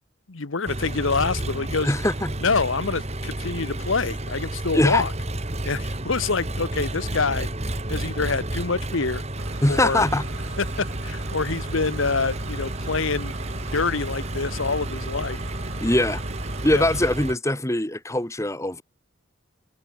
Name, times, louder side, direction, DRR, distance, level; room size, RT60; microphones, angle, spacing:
voice 1, 0.3-1.9 2.4-5.1 5.6-7.5 7.9-9.2 9.7-10.1 10.6-13.3 13.7-15.4 16.7-16.9, left 4 dB, 80° left, 1.2 m, -26 dB
Engine, 0.7-17.4, right 1 dB, 35° right, 2.5 m, -31 dB
voice 2, 1.8-2.3 4.7-5.1 9.6-10.2 15.8-16.2 16.6-18.8, left 1 dB, 15° left, 2.0 m, -22 dB
sound 1, 9.4-17.1, right 1 dB, 85° right, 4.7 m, -37 dB
head